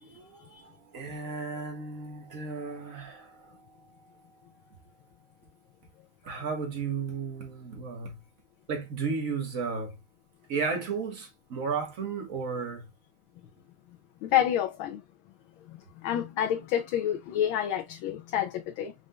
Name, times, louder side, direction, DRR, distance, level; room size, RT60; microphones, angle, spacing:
voice 1, 0.0-4.1 6.2-8.2 8.7-10.0 10.5-12.9, right 5 dB, 45° right, 1.6 m, -34 dB
voice 2, 14.2-15.0 15.7-18.9, left 10 dB, 75° left, 1.4 m, -29 dB
5.6 x 3.7 x 2.3 m
omnidirectional pair, 2.4 m